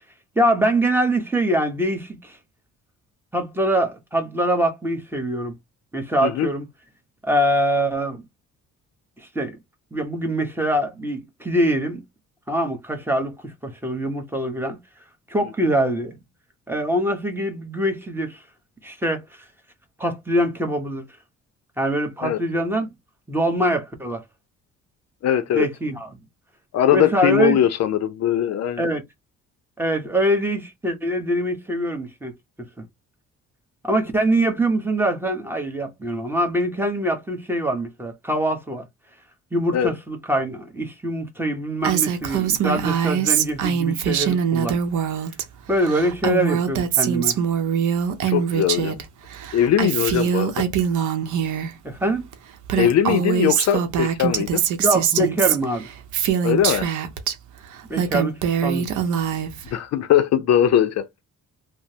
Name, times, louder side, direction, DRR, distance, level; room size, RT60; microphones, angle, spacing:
voice 1, 0.4-2.4 3.3-5.6 5.9-6.6 7.2-8.2 9.3-9.6 9.9-12.0 12.5-14.8 15.3-16.2 16.7-18.4 18.8-19.4 20.0-21.1 21.8-22.9 23.3-24.2 25.5-26.1 26.9-27.6 28.8-29.0 29.8-32.3 32.8-32.9 33.8-38.8 39.5-44.8 45.7-47.4 51.8-52.3 54.8-55.9 57.9-58.9, right 1 dB, 5° right, 0.9 m, -23 dB
voice 2, 25.2-25.7 26.7-28.8 39.7-39.9 48.3-49.0 49.5-50.6 52.7-54.6 56.4-56.9 59.7-61.1, left 10 dB, 60° left, 0.5 m, -20 dB
Female speech woman speaking, 41.8-45.4 45.7-49.0 49.3-51.7 52.3-52.4 52.6-57.3 57.8-59.7, right 8 dB, 80° right, 0.7 m, -23 dB
2.9 x 2.0 x 2.7 m
cardioid pair, 90°, 30 cm